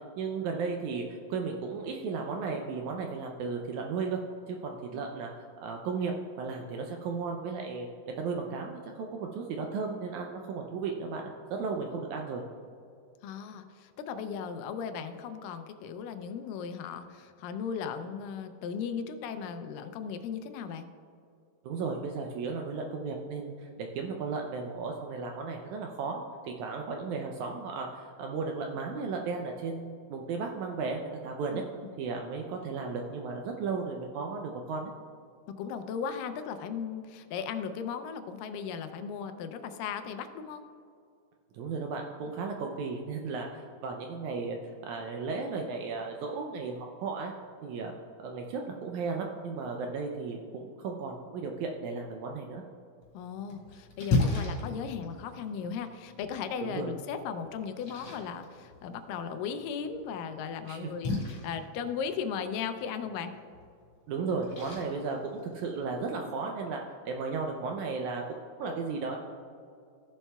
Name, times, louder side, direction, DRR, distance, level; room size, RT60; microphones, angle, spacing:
voice 1, 0.2-4.2 4.5-7.9 8.2-12.4 21.6-31.6 32.0-34.9 41.5-47.3 47.6-47.9 48.2-52.6 56.6-56.9 60.7-61.2 64.1-68.2 68.6-69.2, right 4 dB, 80° right, 2 dB, 1.7 m, -35 dB
voice 2, 13.2-20.9 31.5-31.6 35.5-40.6 53.1-63.4, left 6 dB, 85° left, 9 dB, 2.2 m, -37 dB
Splash splatter, 53.0-66.0, left 3 dB, 60° left, 2.8 m, -37 dB
15.0 x 7.2 x 2.3 m, 2.4 s
omnidirectional pair, 3.9 m